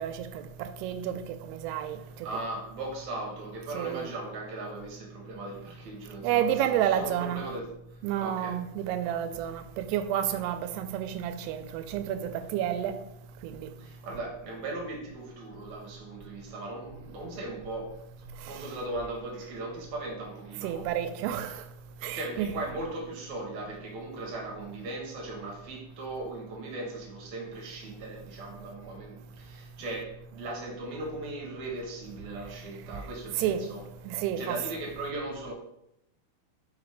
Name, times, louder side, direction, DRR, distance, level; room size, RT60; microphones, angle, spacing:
voice 1, 0.0-2.3 3.7-4.1 6.2-7.4 8.0-13.0 13.4-13.7 18.4-18.6 20.6-21.6 22.0-22.5 33.4-33.6 34.1-34.6, right 10 dB, 85° right, 2.6 m, -30 dB
voice 2, 2.2-8.6 13.8-21.1 22.1-33.8 34.4-35.5, right 2 dB, 65° right, 2.0 m, -38 dB
5.1 x 4.6 x 4.9 m
omnidirectional pair, 4.6 m